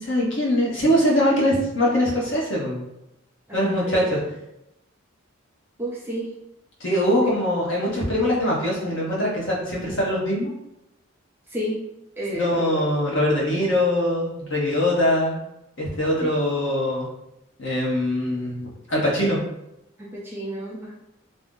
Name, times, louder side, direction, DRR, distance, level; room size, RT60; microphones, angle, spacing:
voice 1, 0.0-2.8 3.5-4.2 6.8-10.5 12.3-15.4 15.8-17.1 17.6-19.4, left 1 dB, 55° left, -4 dB, 0.8 m, -22 dB
voice 2, 3.5-4.0 5.8-6.3 7.1-7.2 11.5-11.8 12.2-12.8 20.0-20.9, right 1 dB, 10° right, -6 dB, 0.5 m, -31 dB
2.6 x 2.0 x 3.6 m, 0.86 s
head